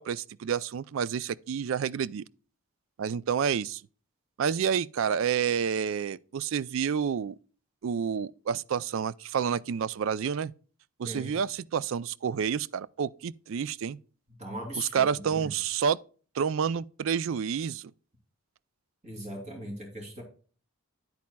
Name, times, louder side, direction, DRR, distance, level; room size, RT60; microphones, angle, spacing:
voice 1, 0.0-2.2 3.0-3.8 4.4-7.3 7.8-10.5 11.0-14.0 14.7-16.0 16.4-17.9, right 7 dB, 65° right, 0.3 m, -29 dB
voice 2, 11.0-11.4 14.4-15.5 19.0-20.2, right 1 dB, 35° right, 2.8 m, -39 dB
9.5 x 8.5 x 2.2 m
head